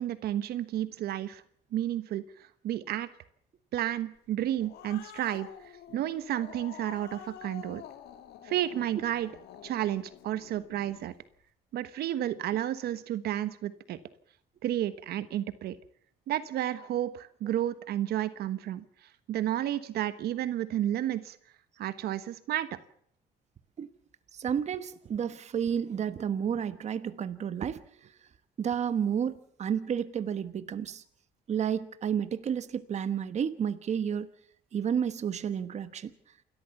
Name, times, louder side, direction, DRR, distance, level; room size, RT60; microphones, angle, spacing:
voice 1, 0.0-1.4 1.7-3.1 3.7-5.5 5.9-7.8 8.4-9.3 9.6-11.1 11.7-14.0 14.6-15.8 16.3-18.8 19.3-21.4 21.8-22.7, right 12 dB, 70° right, 13 dB, 1.3 m, -31 dB
Growling, 4.3-11.1, left 9 dB, 75° left, 1.8 m, -48 dB
voice 2, 24.3-27.8 28.6-31.0 31.5-34.3 34.7-36.1, right 8 dB, 40° right, 12 dB, 1.2 m, -31 dB
28.0 x 13.5 x 7.1 m, 0.65 s
cardioid pair, 110°, 17 cm